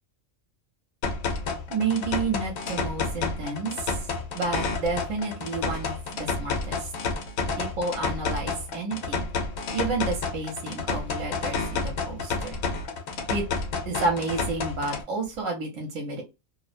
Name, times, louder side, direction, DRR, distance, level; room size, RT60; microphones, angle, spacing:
sound 1, 1.0-15.0, left 4 dB, 80° left, 1.0 m, -30 dB
voice 1, 1.7-4.0 4.3-6.9 7.6-9.3 9.7-12.6 13.3-13.4 13.9-16.2, right 3 dB, 75° right, 2 dB, 1.1 m, -30 dB
2.6 x 2.1 x 2.4 m, 0.25 s
omnidirectional pair, 1.4 m